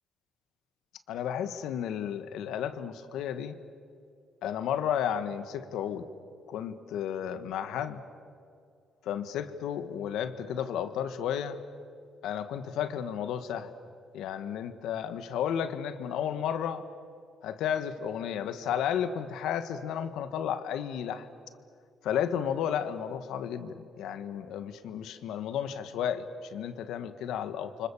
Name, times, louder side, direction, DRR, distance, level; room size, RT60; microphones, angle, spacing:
voice 1, 1.1-3.5 4.4-6.0 6.5-8.0 9.0-11.6 12.2-13.7 14.1-16.8 17.4-21.3 22.0-27.9, left 9 dB, 85° left, 11 dB, 1.5 m, -33 dB
30.0 x 25.0 x 7.3 m, 2.4 s
cardioid pair, 90°, 0 cm